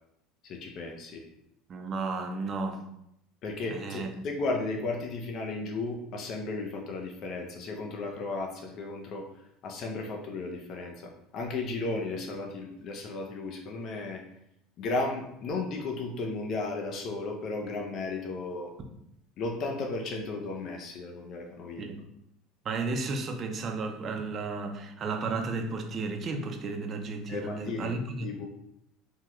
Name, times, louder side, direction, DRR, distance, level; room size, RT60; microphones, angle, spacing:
voice 1, 0.4-1.2 3.4-9.3 9.6-14.2 14.8-18.7 19.4-21.9 27.3-28.5, left 3 dB, 45° left, 0.5 m, -34 dB
voice 2, 1.7-2.8 3.7-4.3 21.8-22.1 22.6-28.3, right 3 dB, 35° right, 0.4 m, -33 dB
3.5 x 2.2 x 2.9 m
cardioid pair, 135°, 0 cm